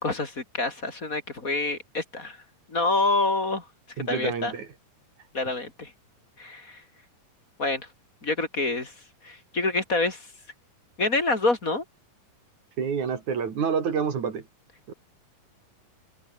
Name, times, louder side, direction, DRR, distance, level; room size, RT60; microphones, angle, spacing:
voice 1, 0.0-2.4 2.7-3.6 4.1-4.5 5.3-5.9 6.4-6.8 7.6-7.9 8.2-8.9 9.2-10.3 11.0-11.8, left 3 dB, 25° left, 2.9 m, -27 dB
voice 2, 4.0-4.7 12.8-14.5 14.9-15.0, right 6 dB, 60° right, 4.1 m, -28 dB
omnidirectional pair, 3.9 m